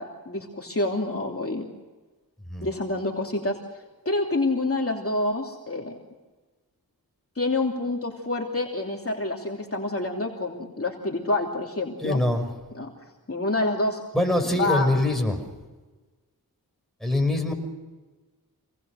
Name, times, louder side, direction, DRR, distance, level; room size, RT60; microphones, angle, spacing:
voice 1, 0.0-1.7 2.6-6.0 7.3-12.2 12.7-12.9 13.3-14.0 14.5-14.9, left 2 dB, 35° left, 0 dB, 3.0 m, -27 dB
voice 2, 12.0-12.5 14.1-15.4 17.0-17.5, left 1 dB, ahead, 2 dB, 5.9 m, -23 dB
27.0 x 19.5 x 6.5 m, 1.3 s
wide cardioid pair, 60°, 37 cm